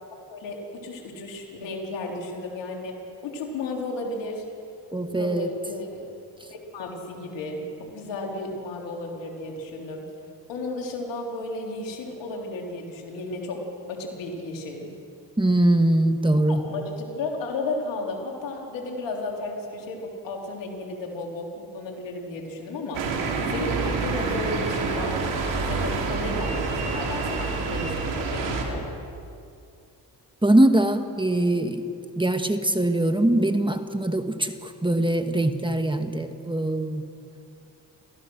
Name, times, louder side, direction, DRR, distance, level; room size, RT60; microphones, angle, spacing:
voice 1, 0.3-3.0 3.2-4.4 5.1-6.1 6.5-7.7 7.9-10.0 10.5-14.9 16.5-23.0 23.5-25.4 25.7-28.8, left 2 dB, 85° left, 0 dB, 3.6 m, -33 dB
voice 2, 4.9-5.5 15.4-16.6 30.4-31.8 32.2-37.0, right 1 dB, 10° right, 7 dB, 1.7 m, -22 dB
sound 1, 22.9-28.6, right 4 dB, 85° right, 3.0 m, -27 dB
29.0 x 14.5 x 6.3 m, 2.5 s
supercardioid pair, 50°, 43 cm